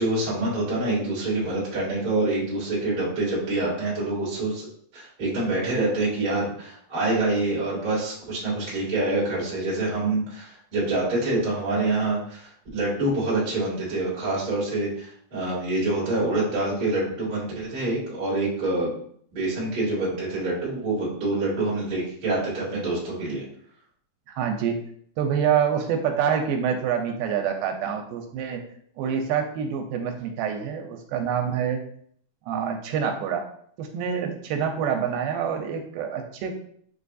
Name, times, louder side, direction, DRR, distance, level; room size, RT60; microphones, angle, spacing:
voice 1, 0.0-4.7 4.9-18.9 19.3-23.4, right 2 dB, 35° right, -7 dB, 0.8 m, -26 dB
voice 2, 24.3-24.8 25.2-28.6 29.0-31.8 32.5-33.4 33.8-36.5, right 7 dB, 85° right, 4 dB, 2.3 m, -26 dB
6.8 x 2.6 x 2.3 m, 0.62 s
omnidirectional pair, 4.1 m